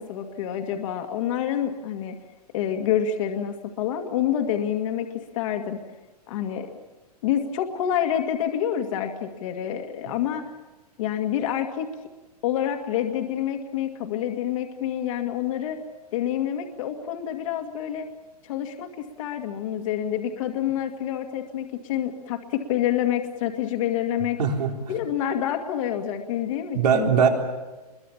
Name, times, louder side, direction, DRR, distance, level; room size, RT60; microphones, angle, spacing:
voice 1, 0.0-2.2 2.5-5.8 6.3-6.7 7.2-10.4 11.0-11.9 12.4-15.8 16.1-18.1 18.4-24.4 24.9-27.1, left 10 dB, 55° left, 4 dB, 2.2 m, -27 dB
voice 2, 24.4-25.0 26.7-27.3, right 6 dB, 85° right, 2 dB, 4.1 m, -21 dB
26.5 x 22.5 x 7.3 m, 1.2 s
hypercardioid pair, 140°, 20 cm